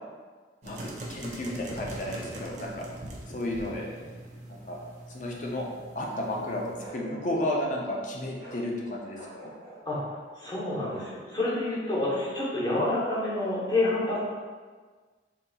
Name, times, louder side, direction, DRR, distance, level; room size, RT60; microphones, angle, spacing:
voice 1, 0.6-2.8 3.3-3.9 4.5-4.8 5.1-5.6 5.9-6.7 6.9-9.5, left 1 dB, 40° left, -1 dB, 0.5 m, -32 dB
sound 1, 0.6-6.9, right 1 dB, 40° right, 0.4 m, -42 dB
sound 2, 1.6-4.6, equal, 60° left, 0.9 m, -48 dB
Bark, 6.8-7.7 8.4-8.6 9.1-9.9 10.9-11.2, right 2 dB, 55° right, 0.9 m, -45 dB
voice 2, 10.4-14.2, left 2 dB, 20° left, -7 dB, 0.8 m, -28 dB
3.9 x 2.6 x 2.3 m, 1.5 s
head